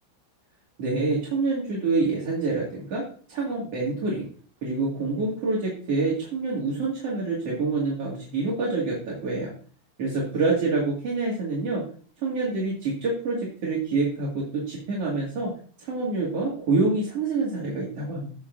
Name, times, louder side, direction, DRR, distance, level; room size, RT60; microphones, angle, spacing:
voice 1, 0.8-3.0 3.3-4.2 4.6-9.5 10.0-11.8 12.2-15.5 15.8-18.3, right 3 dB, 45° right, -5 dB, 2.2 m, -26 dB
15.5 x 8.3 x 2.7 m, 0.42 s
omnidirectional pair, 5.8 m